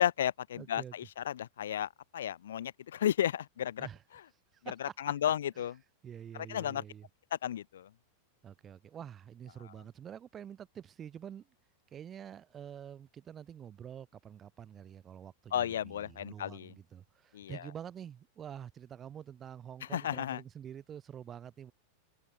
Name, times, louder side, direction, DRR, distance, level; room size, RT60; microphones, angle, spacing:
voice 1, 0.0-3.9 4.8-5.7 6.5-6.8 7.3-7.9 15.5-16.7 17.3-17.6 19.9-20.4, left 10 dB, 60° left, 2.3 m, -33 dB
voice 2, 0.6-0.9 3.8-4.0 4.5-5.1 5.6-5.7 6.0-7.1 8.4-11.5 11.9-21.7, right 9 dB, 25° right, 4.5 m, -47 dB
figure-of-eight pair, 90°, 0 cm